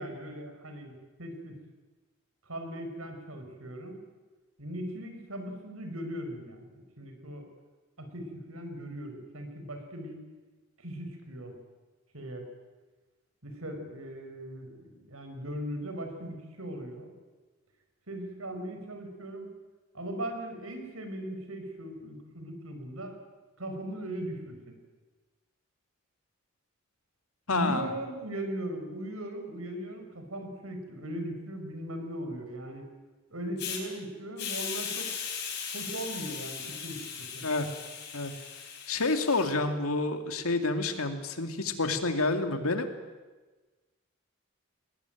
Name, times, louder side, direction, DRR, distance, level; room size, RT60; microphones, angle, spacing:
voice 1, 0.0-1.5 2.5-4.0 4.6-7.5 8.0-10.2 10.8-11.6 12.1-12.4 13.4-17.1 18.1-19.5 19.9-23.2 23.6-24.7 27.5-32.9 33.3-35.1 35.7-37.5, right 1 dB, 85° right, 6 dB, 4.9 m, -39 dB
voice 2, 27.5-27.9 37.4-37.7 38.1-38.3 38.9-42.9, left 3 dB, 90° left, 7 dB, 2.4 m, -28 dB
Hiss, 33.6-33.8 34.4-39.5, left 7 dB, 50° left, 5.3 m, -38 dB
21.5 x 20.0 x 9.3 m, 1.3 s
head